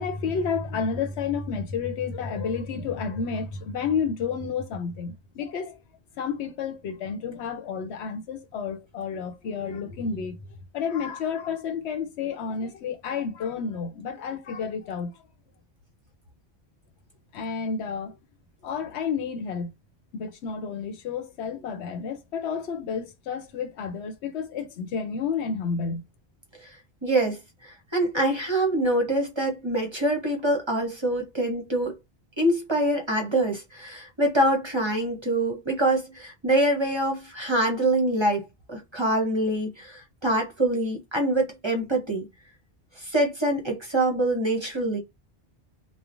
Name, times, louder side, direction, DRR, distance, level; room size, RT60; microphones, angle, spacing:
voice 1, 0.0-5.8 6.2-10.4 10.7-15.1 17.3-18.2 18.6-19.7 20.1-26.0, left 6 dB, 85° left, 0.9 m, -30 dB
voice 2, 27.0-32.0 32.4-42.3 43.0-45.0, right 1 dB, 30° right, 0.7 m, -25 dB
3.1 x 2.1 x 2.5 m
omnidirectional pair, 1.1 m